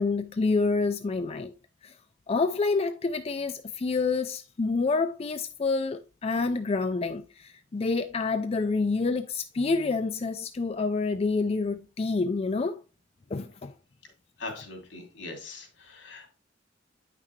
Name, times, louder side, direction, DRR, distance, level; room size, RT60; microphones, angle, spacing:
voice 1, 0.0-1.5 1.8-1.9 2.3-12.8 13.3-13.7, left 3 dB, 30° left, 0.4 m, -28 dB
voice 2, 14.4-16.3, left 3 dB, 80° left, 2.7 m, -41 dB
8.8 x 5.8 x 3.1 m
head